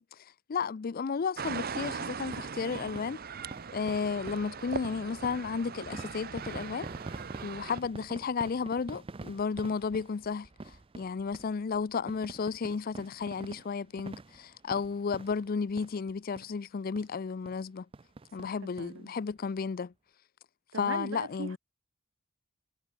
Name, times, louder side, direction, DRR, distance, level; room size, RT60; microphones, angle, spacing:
voice 1, 0.0-3.2 3.7-6.9 7.4-17.9 18.3-19.9 20.7-21.6, left 5 dB, 45° left, 0.4 m, -33 dB
sound 1, 1.4-7.8, right 5 dB, 45° right, 0.8 m, -40 dB
sound 2, 2.3-16.1 16.4-16.5 17.0-17.1 17.5-17.6 17.9-18.9 19.3-19.4 19.6-19.7, right 3 dB, 25° right, 0.5 m, -46 dB
voice 2, 18.4-19.1 20.7-21.6, right 3 dB, 70° right, 1.1 m, -40 dB
head